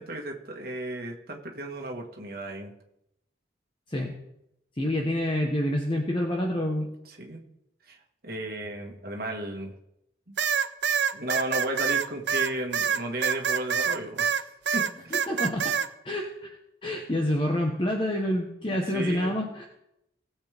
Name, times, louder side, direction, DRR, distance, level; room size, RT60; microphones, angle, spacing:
voice 1, 0.0-2.7 7.1-7.4 7.9-8.0 8.2-9.7 10.3-10.4 11.1-14.4 14.7-15.3 18.7-19.3, right 1 dB, 55° right, 1 dB, 1.7 m, -34 dB
voice 2, 4.8-6.9 15.1-15.8 16.0-16.5 16.8-19.7, left 1 dB, 30° left, 1 dB, 1.1 m, -27 dB
sound 1, 10.4-14.4 14.7-15.9, right 7 dB, 70° right, 0.6 m, -25 dB
19.0 x 7.3 x 3.5 m, 0.83 s
head